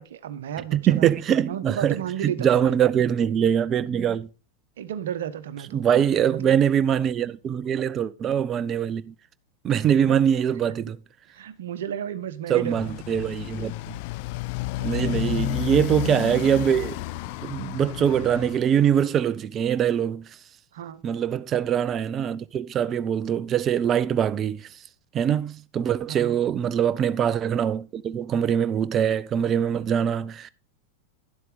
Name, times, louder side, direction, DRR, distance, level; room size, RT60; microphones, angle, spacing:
voice 1, 0.0-1.1 1.4-2.8 4.8-5.8 6.3-6.6 10.1-10.3 11.3-12.8 14.8-15.5 20.7-21.0 26.1-26.4, right 9 dB, 60° right, 1.0 m, -33 dB
voice 2, 0.7-2.0 2.2-4.3 5.7-9.1 9.6-11.0 12.5-13.9 14.8-17.0 17.4-20.3 21.0-24.7 25.1-30.5, right 9 dB, 30° right, 0.6 m, -23 dB
Motorcycle, 12.6-18.6, left 18 dB, 45° left, 0.4 m, -31 dB
11.5 x 7.7 x 4.9 m
figure-of-eight pair, 90°, 0 cm